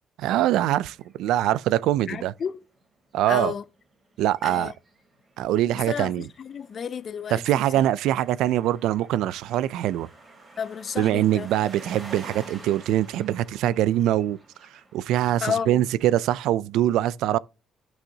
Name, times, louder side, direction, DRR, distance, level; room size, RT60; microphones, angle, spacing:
voice 1, 0.2-2.3 3.1-3.5 4.2-4.7 5.4-6.3 7.3-10.1 11.0-14.4 14.9-17.4, right 13 dB, 80° right, 0.3 m, -23 dB
sound 1, 0.9-2.5 2.8-2.9 3.1-16.0, right 2 dB, 20° right, 3.1 m, -49 dB
voice 2, 2.1-2.6 3.3-3.6 4.4-4.7 5.9-7.4 10.6-11.5 15.4-15.8, left 7 dB, 40° left, 0.4 m, -31 dB
11.5 x 6.3 x 2.8 m
cardioid pair, 145°, 0 cm